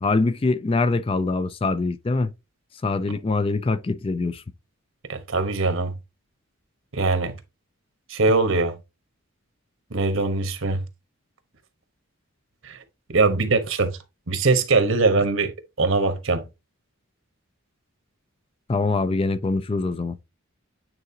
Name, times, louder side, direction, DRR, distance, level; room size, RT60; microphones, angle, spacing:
voice 1, 0.0-2.3 2.8-4.4 18.7-20.2, left 3 dB, 25° left, 0.4 m, -23 dB
voice 2, 5.1-5.9 6.9-7.4 8.1-8.8 9.9-10.8 12.6-12.8 13.1-14.0 14.3-15.5 15.8-16.5, right 3 dB, 70° right, 1.1 m, -22 dB
9.0 x 3.7 x 2.8 m
head